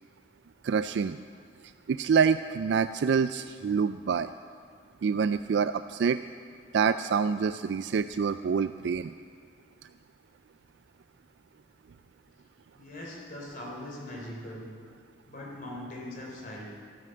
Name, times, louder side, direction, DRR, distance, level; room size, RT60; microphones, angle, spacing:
voice 1, 0.6-1.2 1.6-4.3 5.0-6.2 6.7-9.1, right 6 dB, 60° right, 12 dB, 0.3 m, -26 dB
voice 2, 12.7-14.7 15.3-16.6, left 1 dB, 45° left, -2 dB, 3.5 m, -41 dB
13.0 x 13.0 x 7.7 m, 2.1 s
head